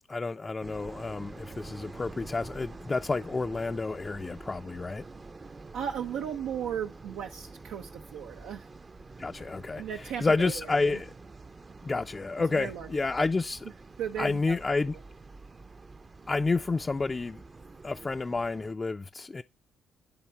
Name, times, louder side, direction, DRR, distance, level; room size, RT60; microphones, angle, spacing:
voice 1, 0.1-5.0 9.2-9.8 10.2-11.1 11.8-13.7 14.2-15.0 16.3-17.4 17.8-19.4, left 3 dB, 25° left, 0.4 m, -30 dB
sound 1, 0.6-18.7, right 3 dB, 30° right, 0.6 m, -47 dB
voice 2, 5.7-8.7 9.8-11.0 12.5-13.1 14.0-14.6, right 8 dB, 90° right, 0.7 m, -36 dB
9.6 x 3.6 x 4.4 m
cardioid pair, 90°, 0 cm